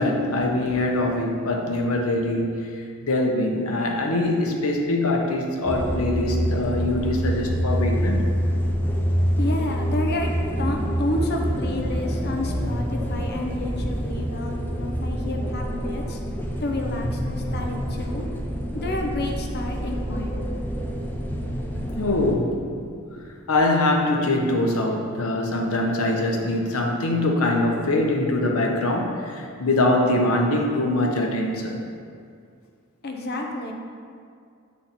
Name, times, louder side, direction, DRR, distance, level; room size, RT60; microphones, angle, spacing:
voice 1, 0.0-2.8 3.0-8.2 22.0-22.7 23.1-23.2 23.5-31.8, left 1 dB, 75° left, 1 dB, 0.9 m, -23 dB
sound 1, 5.6-22.3, equal, 10° left, 0.6 m, -26 dB
voice 2, 9.4-10.3 10.6-16.2 16.6-18.3 18.7-20.4 33.0-33.7, left 1 dB, 50° left, 2 dB, 0.8 m, -30 dB
7.5 x 4.1 x 4.2 m, 2.3 s
head